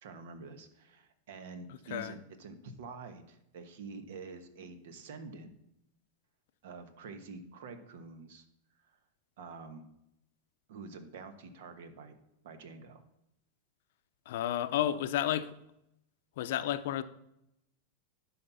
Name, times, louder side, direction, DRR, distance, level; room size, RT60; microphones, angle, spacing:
voice 1, 0.0-5.5 6.6-8.4 8.8-9.0 9.4-9.8 10.7-12.1 12.4-13.0, right 4 dB, 70° right, 1.2 m, -47 dB
voice 2, 1.7-2.1 14.3-15.5 16.4-17.0, left 11 dB, 65° left, 0.6 m, -32 dB
11.5 x 4.3 x 5.6 m
supercardioid pair, 160°, 0 cm